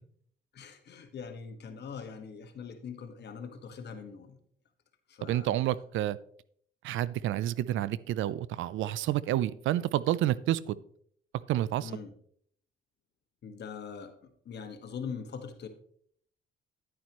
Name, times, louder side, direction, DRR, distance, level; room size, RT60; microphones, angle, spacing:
voice 1, 0.5-4.4 5.1-5.6 11.8-12.1 13.4-14.1 14.4-15.7, left 6 dB, 60° left, 1.5 m, -42 dB
voice 2, 5.2-6.2 6.8-10.8 11.5-11.9, right 13 dB, 80° right, 0.5 m, -29 dB
10.5 x 9.4 x 3.0 m
cardioid pair, 90°, 20 cm